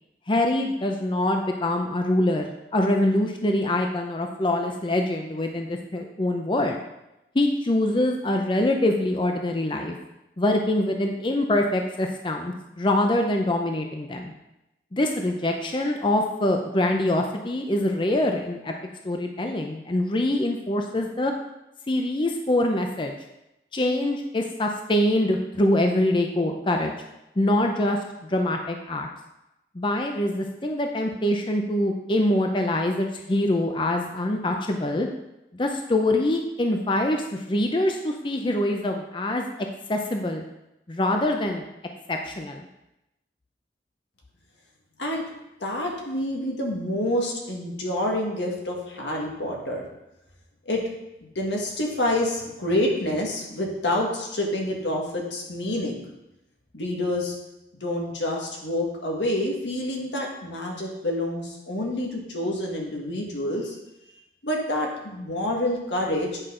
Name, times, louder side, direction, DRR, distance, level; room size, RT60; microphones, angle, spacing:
voice 1, 0.3-6.8 7.3-9.9 10.4-14.3 14.9-18.7 19.0-21.3 21.9-23.1 23.7-26.9 27.4-29.1 29.7-35.1 35.5-39.5 39.9-40.4 40.9-41.6 42.1-42.7, left 1 dB, 30° left, 3 dB, 0.5 m, -24 dB
voice 2, 45.6-49.9 50.6-50.8 51.3-56.0 56.7-57.3 57.8-63.7 64.4-66.4, left 1 dB, 90° left, -1 dB, 1.7 m, -27 dB
8.9 x 5.9 x 3.7 m, 0.92 s
head